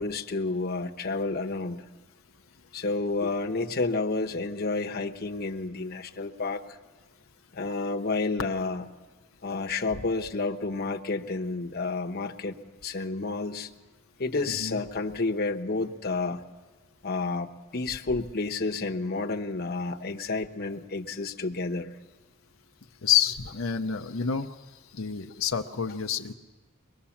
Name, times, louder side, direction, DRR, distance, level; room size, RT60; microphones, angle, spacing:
voice 1, 0.0-1.8 2.7-6.8 7.5-8.9 9.4-12.6 12.8-13.7 14.2-16.4 17.0-21.9, left 3 dB, 50° left, 3 dB, 1.0 m, -30 dB
voice 2, 23.0-24.5 24.9-26.3, left 8 dB, 85° left, 5 dB, 0.8 m, -28 dB
23.5 x 20.0 x 7.2 m, 1.3 s
head